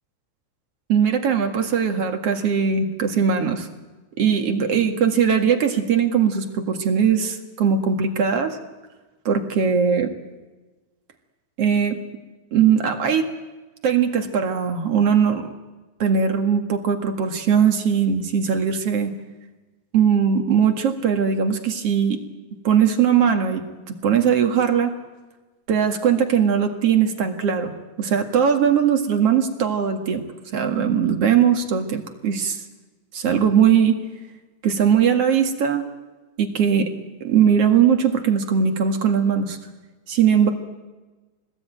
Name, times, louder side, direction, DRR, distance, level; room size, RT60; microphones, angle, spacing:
voice 1, 0.9-3.7 4.2-8.6 9.3-10.1 11.6-12.0 12.5-13.3 13.8-15.5 16.0-19.1 19.9-22.2 22.6-24.9 25.7-30.2 30.5-32.6 33.1-34.0 34.6-35.8 36.4-36.9 37.2-39.6 40.1-40.5, right 7 dB, 55° right, 5 dB, 2.7 m, -20 dB
24.5 x 20.0 x 9.1 m, 1.2 s
omnidirectional pair, 3.4 m